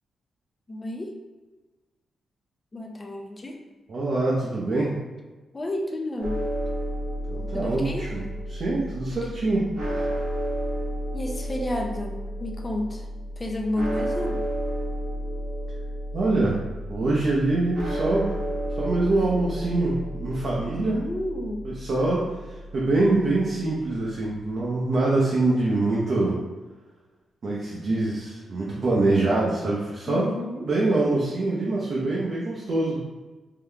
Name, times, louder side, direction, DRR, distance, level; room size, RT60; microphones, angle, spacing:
voice 1, 0.7-1.2 2.7-3.6 5.5-6.4 7.5-8.1 11.1-13.1 13.4-14.4 20.8-21.8 30.1-30.7, left 1 dB, 20° left, 1 dB, 0.4 m, -31 dB
voice 2, 3.9-5.0 7.3-8.2 8.5-9.7 16.1-16.6 16.9-18.3 18.7-21.0 21.6-26.4 27.4-30.3 30.7-33.1, right 2 dB, 45° right, -6 dB, 0.7 m, -24 dB
sound 1, 6.2-24.1, equal, 60° right, 1.1 m, -32 dB
3.7 x 2.9 x 3.3 m, 1.2 s
wide cardioid pair, 180°, 0 cm